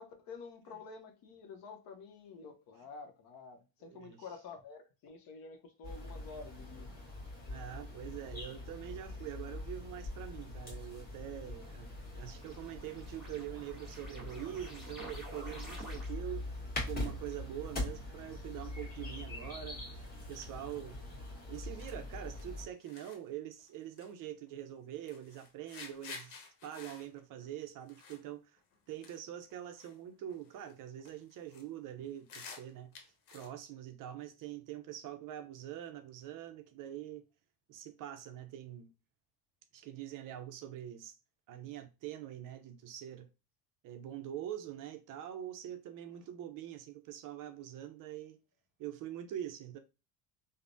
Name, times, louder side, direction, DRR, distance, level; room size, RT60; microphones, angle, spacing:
voice 1, 0.0-7.0, left 4 dB, 50° left, 0.8 m, -49 dB
voice 2, 3.8-4.3 7.5-20.0 20.3-21.0 21.5-28.6 28.9-32.9 33.3-37.2 37.7-38.9 39.7-41.1 41.5-43.3 43.8-48.4 48.8-49.8, right 11 dB, 45° right, 0.5 m, -44 dB
sound 1, 5.8-22.7, left 2 dB, 20° left, 1.3 m, -43 dB
sound 2, 11.5-16.5, equal, ahead, 1.5 m, -51 dB
sound 3, 21.8-22.0 22.4-22.5 22.8-23.2 23.6-24.1 24.5-24.7 25.1-28.2 28.6-28.8 29.0-29.2 29.5-30.0 30.3-30.7 31.0-31.6 32.0-33.5, left 5 dB, 85° left, 0.9 m, -51 dB
3.2 x 2.1 x 2.5 m
supercardioid pair, 105°, 46 cm